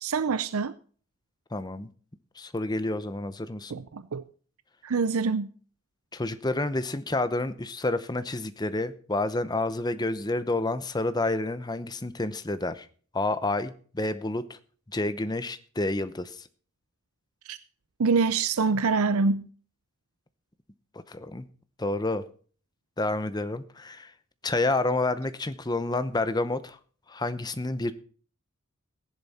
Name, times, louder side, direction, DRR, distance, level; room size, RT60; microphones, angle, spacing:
voice 1, 0.0-0.7 3.7-4.2 4.8-5.5 17.4-17.6 18.0-19.5, right 4 dB, 80° right, 0.6 m, -25 dB
voice 2, 1.5-1.9 2.4-3.7 6.1-12.9 13.1-14.6 14.9-16.5 21.1-21.4 21.8-22.2 23.0-24.1 24.4-26.8 27.1-27.9, left 2 dB, 20° left, 0.7 m, -29 dB
15.0 x 10.5 x 4.2 m
head